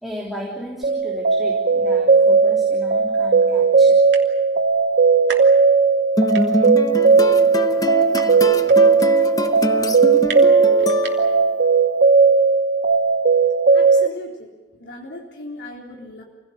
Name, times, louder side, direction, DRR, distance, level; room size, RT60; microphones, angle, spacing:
voice 1, 0.0-4.0, equal, ahead, -3 dB, 3.4 m, -34 dB
sound 1, 0.8-14.1, right 4 dB, 55° right, 0.7 m, -16 dB
sound 2, 2.6-2.7 3.3-3.4 3.7-3.8 4.0-4.6 5.0-6.1 6.3-11.5, right 6 dB, 70° right, 3.0 m, -35 dB
sound 3, 6.2-11.6, left 1 dB, 20° left, 0.9 m, -24 dB
voice 2, 13.7-16.2, left 1 dB, 80° left, -1 dB, 3.7 m, -38 dB
28.0 x 17.0 x 8.9 m, 1.2 s
head